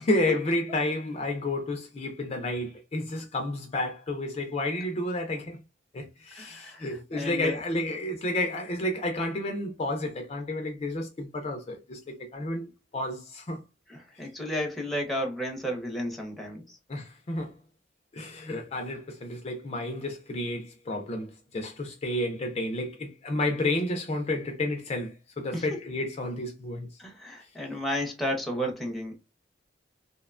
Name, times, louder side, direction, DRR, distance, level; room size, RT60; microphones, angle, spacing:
voice 1, 0.0-5.6 5.9-12.7 12.9-13.6 16.9-17.5 18.1-26.9, left 1 dB, 35° left, 0.4 m, -31 dB
voice 2, 6.3-7.6 13.9-16.8 25.5-25.8 27.0-29.2, equal, ahead, 0.7 m, -33 dB
2.7 x 2.1 x 2.3 m
head